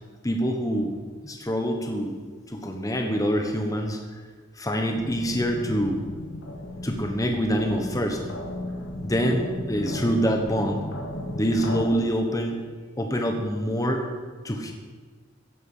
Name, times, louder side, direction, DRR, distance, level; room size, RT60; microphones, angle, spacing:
voice 1, 0.2-0.9 1.2-2.2 2.5-4.0 4.6-6.0 6.8-8.2 9.0-10.8 11.3-12.6 13.0-14.0 14.4-14.7, equal, 15° left, 3 dB, 1.2 m, -25 dB
sound 1, 5.0-11.9, left 1 dB, 65° left, 1.6 m, -35 dB
15.5 x 11.0 x 5.7 m, 1.5 s
head